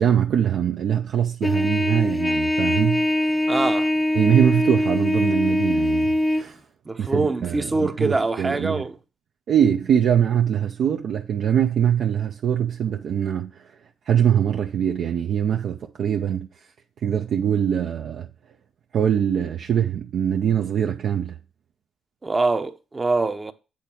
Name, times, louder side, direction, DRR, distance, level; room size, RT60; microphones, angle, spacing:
voice 1, 0.0-3.2 4.1-6.6 7.0-8.9 9.5-13.6 14.1-16.5 17.0-18.3 18.9-21.4, right 9 dB, 65° right, 0.6 m, -22 dB
Trumpet, 1.4-6.4, left 1 dB, 20° left, 0.6 m, -22 dB
voice 2, 3.5-3.9 6.9-9.0 22.2-23.5, right 3 dB, 25° right, 0.8 m, -24 dB
8.7 x 3.4 x 5.9 m
cardioid pair, 90°, 0 cm